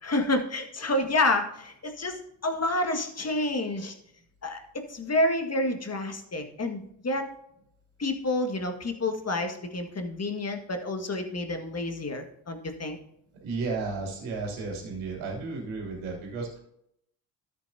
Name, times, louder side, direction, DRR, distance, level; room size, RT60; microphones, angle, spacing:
voice 1, 0.0-3.9 4.4-7.3 8.0-13.0, left 2 dB, 30° left, 5 dB, 1.8 m, -29 dB
voice 2, 13.4-16.6, right 4 dB, 75° right, -1 dB, 2.9 m, -33 dB
12.5 x 7.7 x 2.8 m, 0.74 s
hypercardioid pair, 55°, 48 cm